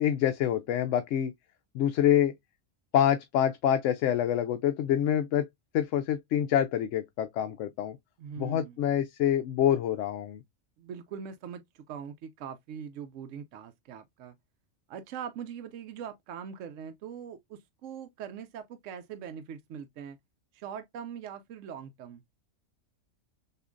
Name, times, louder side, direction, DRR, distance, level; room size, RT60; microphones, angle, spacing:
voice 1, 0.0-1.3 1.7-2.3 2.9-5.5 5.7-8.0 8.4-10.4, left 10 dB, 75° left, 0.9 m, -26 dB
voice 2, 8.2-8.8 10.8-14.3 14.9-20.2 20.5-22.2, right 7 dB, 75° right, 0.9 m, -42 dB
6.6 x 2.5 x 2.5 m
omnidirectional pair, 1.3 m